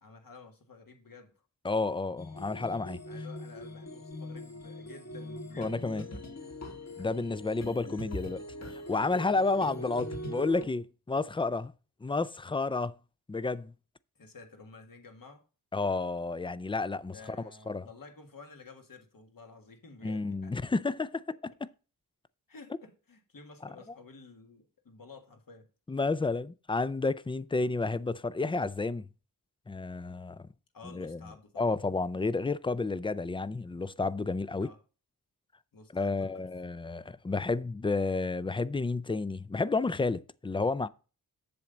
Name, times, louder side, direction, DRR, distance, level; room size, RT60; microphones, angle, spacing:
voice 1, 0.0-1.3 3.0-6.5 14.1-15.5 17.0-20.7 22.5-25.7 30.7-31.8 34.6-34.8 35.7-36.5, left 4 dB, 65° left, 1.8 m, -52 dB
voice 2, 1.6-3.0 5.6-6.0 7.0-8.4 8.7-11.7 12.0-12.9 13.3-13.7 15.7-17.4 17.7-17.9 20.0-21.5 25.9-29.1 29.7-30.4 30.9-31.2 31.6-34.7 35.9-40.9, left 3 dB, 15° left, 0.3 m, -31 dB
sound 1, 2.2-10.6, equal, 45° left, 1.6 m, -41 dB
7.7 x 7.2 x 3.9 m
wide cardioid pair, 120°, 37 cm